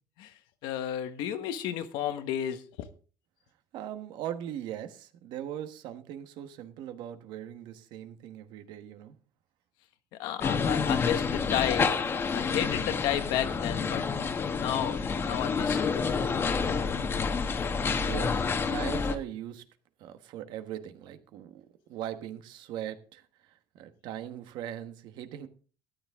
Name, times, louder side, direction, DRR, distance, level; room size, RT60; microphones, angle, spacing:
voice 1, 0.6-2.6 10.2-15.9, left 11 dB, 85° left, 1.3 m, -32 dB
voice 2, 3.7-9.2 18.0-18.4 18.7-19.6 20.0-25.5, right 11 dB, 75° right, 1.3 m, -40 dB
sound 1, 10.4-19.2, left 5 dB, 30° left, 1.2 m, -29 dB
13.0 x 10.0 x 3.6 m
cardioid pair, 125°, 8 cm